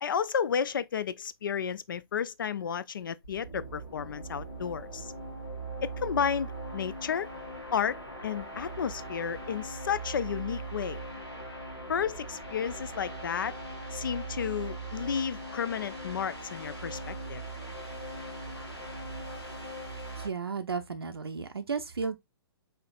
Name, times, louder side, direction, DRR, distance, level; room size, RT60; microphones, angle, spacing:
voice 1, 0.0-5.1 5.8-7.3 7.7-8.0 8.2-11.0 11.9-13.5 13.9-17.4, left 7 dB, 55° left, 0.4 m, -32 dB
sound 1, 3.2-20.3, right 2 dB, 85° left, 1.9 m, -40 dB
voice 2, 20.2-22.2, right 5 dB, 70° right, 0.5 m, -33 dB
4.8 x 3.1 x 2.3 m
figure-of-eight pair, 125°, 13 cm